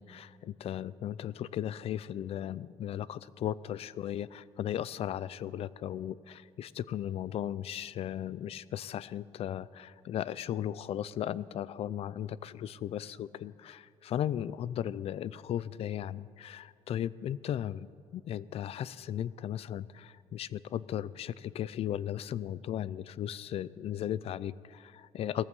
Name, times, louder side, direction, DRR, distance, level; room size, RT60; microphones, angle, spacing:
voice 1, 0.0-17.9 18.1-25.4, left 11 dB, 60° left, 19 dB, 0.4 m, -36 dB
17.5 x 14.5 x 5.4 m, 2.3 s
cardioid pair, 125°, 11 cm